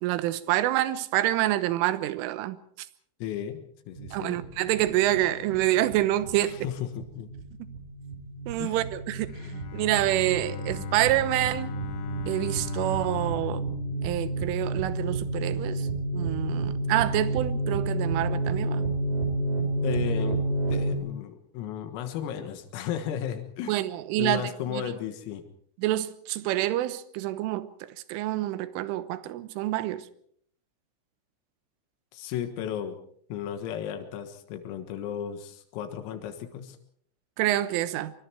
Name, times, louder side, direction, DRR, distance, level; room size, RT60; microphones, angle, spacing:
voice 1, 0.0-2.6 4.1-6.6 8.5-9.3 9.7-11.7 12.3-13.7 14.0-15.9 16.1-18.9 23.7-24.8 25.8-30.0 37.4-38.1, right 14 dB, 80° right, 3.5 m, -27 dB
voice 2, 3.2-3.6 3.9-4.4 6.5-7.3 8.6-8.8 19.8-20.4 20.7-23.8 24.2-25.4 32.1-33.0 33.3-36.8, left 9 dB, 90° left, 4.3 m, -34 dB
sound 1, 4.0-21.0, right 2 dB, 50° right, 6.9 m, -30 dB
Bowed string instrument, 9.3-15.2, left 11 dB, 65° left, 3.6 m, -40 dB
25.0 x 24.0 x 4.6 m
omnidirectional pair, 5.9 m